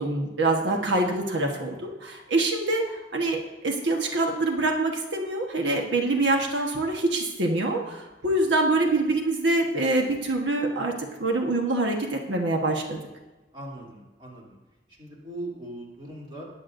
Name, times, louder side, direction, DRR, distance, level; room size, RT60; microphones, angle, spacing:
voice 1, 0.0-10.9 11.2-13.0, right 2 dB, 90° right, 2 dB, 1.3 m, -25 dB
voice 2, 0.6-1.0 1.4-1.9 13.5-14.6 15.0-16.4, right 1 dB, 25° right, -4 dB, 3.0 m, -40 dB
20.0 x 8.5 x 2.6 m, 1.1 s
head